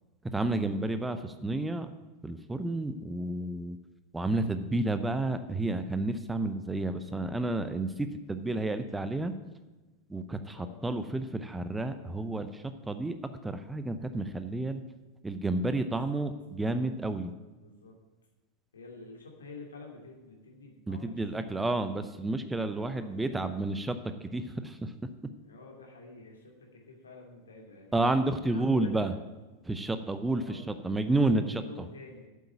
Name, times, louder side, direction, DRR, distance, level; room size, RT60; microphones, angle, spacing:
voice 1, 0.3-1.9 2.2-3.8 4.1-9.4 10.1-13.1 13.4-14.8 15.2-17.3 20.9-24.9 27.9-29.1 29.6-31.6, right 2 dB, 10° right, 10 dB, 0.6 m, -31 dB
voice 2, 15.8-16.2 17.6-17.9 18.7-21.7 22.8-23.7 25.4-28.0 28.4-29.1 30.3-32.3, left 3 dB, 70° left, 1 dB, 2.7 m, -49 dB
8.4 x 7.9 x 8.7 m, 1.1 s
figure-of-eight pair, 90°, 0 cm